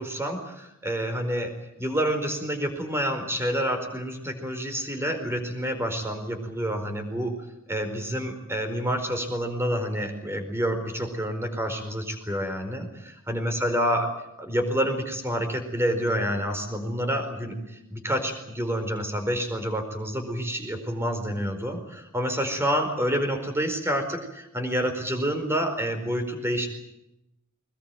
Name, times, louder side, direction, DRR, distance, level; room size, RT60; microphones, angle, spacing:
voice 1, 0.0-7.4 7.7-14.1 14.4-26.7, equal, 10° right, 6 dB, 4.6 m, -28 dB
22.5 x 21.0 x 9.3 m, 0.86 s
head